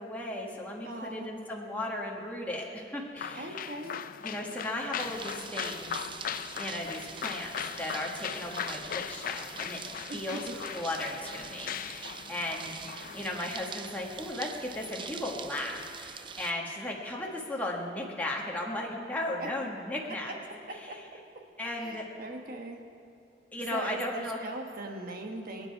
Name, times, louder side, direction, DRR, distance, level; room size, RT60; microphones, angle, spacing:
voice 1, 0.0-3.7 4.2-7.5 7.8-9.8 10.1-20.3 20.7-21.0 21.6-22.1 23.5-24.4, left 1 dB, 10° left, -2 dB, 1.5 m, -36 dB
voice 2, 0.8-1.3 3.3-4.0 10.1-10.4 19.4-19.5 20.9-21.0 21.8-22.8 23.7-25.7, right 2 dB, 50° right, 2 dB, 1.3 m, -40 dB
sound 1, 3.2-13.4, left 8 dB, 50° left, 0.4 m, -39 dB
sound 2, 5.0-16.5, right 6 dB, 25° right, 0.5 m, -44 dB
26.5 x 9.3 x 4.7 m, 2.6 s
head